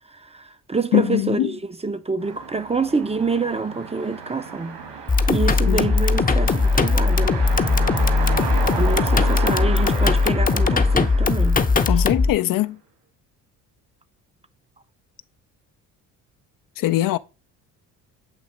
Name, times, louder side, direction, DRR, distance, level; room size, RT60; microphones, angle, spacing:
voice 1, 0.1-4.8 5.3-7.4 8.8-11.6 11.9-12.0, right 4 dB, 15° right, 0.6 m, -26 dB
voice 2, 0.9-1.5 5.6-5.9 11.9-12.8 16.8-17.2, left 15 dB, 55° left, 0.5 m, -22 dB
sound 1, 2.2-12.5, right 5 dB, 70° right, 2.3 m, -32 dB
sound 2, 5.1-12.3, left 4 dB, 20° left, 0.7 m, -19 dB
7.9 x 2.8 x 4.2 m
supercardioid pair, 70°, 39 cm